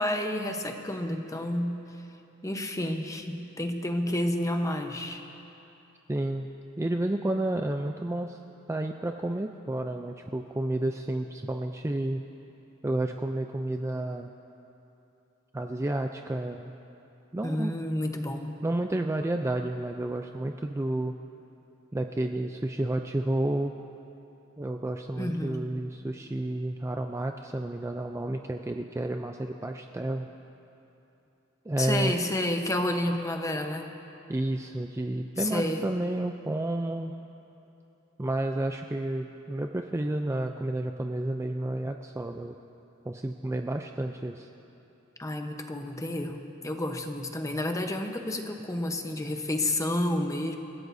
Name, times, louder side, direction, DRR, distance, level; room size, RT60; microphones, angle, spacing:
voice 1, 0.0-1.8 2.4-5.2 17.4-18.5 25.2-25.6 31.8-33.9 35.4-35.8 45.2-50.6, left 1 dB, 15° left, 4 dB, 0.9 m, -30 dB
voice 2, 6.1-6.5 6.8-8.4 8.7-12.2 12.8-14.3 15.5-16.7 17.3-17.7 18.6-21.1 21.9-23.7 24.6-30.3 31.7-32.1 34.3-37.1 38.2-42.6 43.1-44.5, right 1 dB, 15° right, 4 dB, 0.4 m, -31 dB
28.5 x 16.0 x 2.7 m, 2.9 s
head